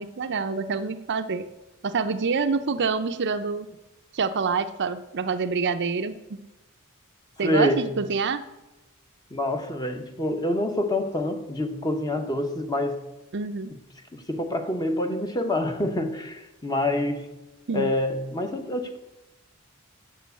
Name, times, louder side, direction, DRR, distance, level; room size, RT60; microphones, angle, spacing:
voice 1, 0.0-1.5 1.8-3.7 4.1-6.4 7.4-8.5 13.3-13.7 17.7-17.9, right 5 dB, 55° right, 10 dB, 0.6 m, -26 dB
voice 2, 7.4-7.9 9.3-13.0 14.1-17.3 17.7-19.0, left 1 dB, 20° left, 6 dB, 1.0 m, -27 dB
7.9 x 7.5 x 8.2 m, 1.0 s
head